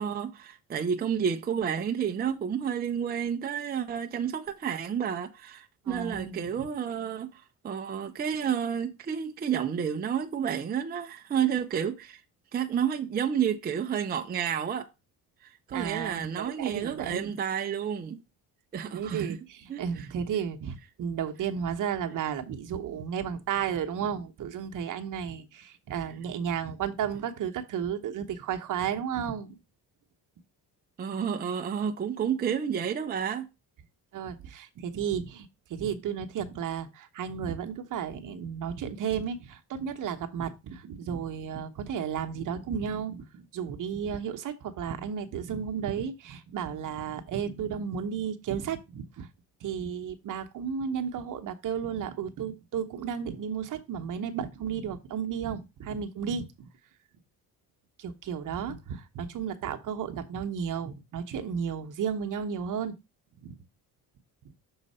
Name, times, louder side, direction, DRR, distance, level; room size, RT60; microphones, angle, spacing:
voice 1, 0.0-12.2 12.5-14.9 15.4-18.2 18.7-19.4 19.7-20.1 31.0-33.5, right 8 dB, 25° right, 0.5 m, -30 dB
voice 2, 5.8-6.7 15.7-17.4 18.9-29.5 34.1-49.3 49.6-56.7 58.0-63.0 63.4-63.6, right 7 dB, 55° right, 1.0 m, -33 dB
6.4 x 4.0 x 5.4 m
cardioid pair, 135°, 37 cm